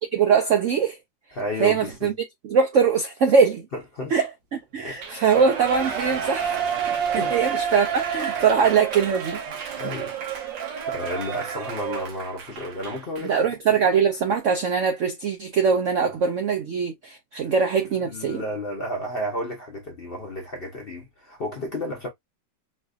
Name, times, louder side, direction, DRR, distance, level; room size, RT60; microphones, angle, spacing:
voice 1, 0.1-1.0 1.6-2.1 2.4-3.6 4.1-6.6 6.8-9.8 13.2-18.4, right 6 dB, 70° right, 0.7 m, -22 dB
voice 2, 1.3-2.1 3.7-4.1 4.8-5.0 5.3-5.4 7.2-7.3 9.8-10.1 10.9-13.8 16.0-16.1 17.4-17.5 18.0-22.1, left 1 dB, 45° left, 0.7 m, -32 dB
Shout / Cheering, 5.0-13.3 13.7-13.8, right 7 dB, 85° right, 1.7 m, -30 dB
4.1 x 2.6 x 2.3 m
omnidirectional pair, 2.0 m